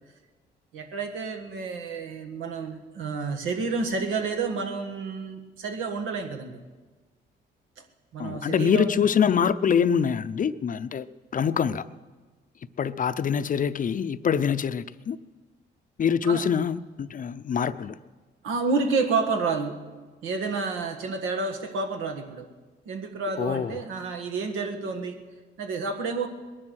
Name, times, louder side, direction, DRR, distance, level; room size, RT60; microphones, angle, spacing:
voice 1, 0.7-6.6 8.1-9.0 16.3-16.4 18.4-19.8 20.2-22.5 22.9-25.2 25.6-26.3, right 4 dB, 85° right, 1.8 m, -29 dB
voice 2, 8.2-11.1 11.3-11.8 12.8-15.2 16.0-18.0 23.4-23.7, left 7 dB, 40° left, 0.6 m, -24 dB
20.5 x 11.0 x 6.4 m
cardioid pair, 90°, 20 cm